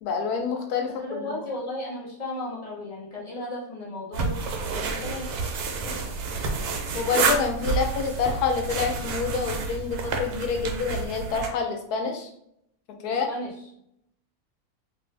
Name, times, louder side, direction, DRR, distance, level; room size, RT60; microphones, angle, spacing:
voice 1, 0.0-1.2 6.9-12.3 13.0-13.3, left 5 dB, 90° left, 4 dB, 1.1 m, -27 dB
voice 2, 0.9-4.4 4.7-5.3 5.8-6.0 13.0-13.5, left 1 dB, 40° left, -4 dB, 0.5 m, -35 dB
sound 1, 4.1-11.5, right 4 dB, 90° right, 1.1 m, -29 dB
2.6 x 2.6 x 3.2 m, 0.75 s
omnidirectional pair, 1.6 m